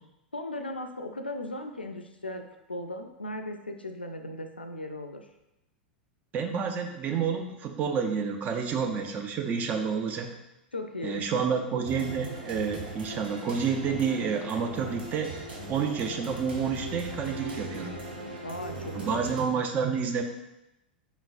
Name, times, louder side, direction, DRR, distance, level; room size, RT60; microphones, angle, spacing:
voice 1, 0.3-2.4 2.7-5.3 10.7-11.7 18.4-19.3, left 1 dB, 90° left, 5 dB, 0.4 m, -37 dB
voice 2, 6.3-10.3 11.0-17.9 18.9-20.2, right 6 dB, 30° right, 4 dB, 0.5 m, -29 dB
sound 1, 11.8-19.4, right 1 dB, 75° right, 0.9 m, -39 dB
4.2 x 4.0 x 2.4 m, 0.91 s
figure-of-eight pair, 90°, 5 cm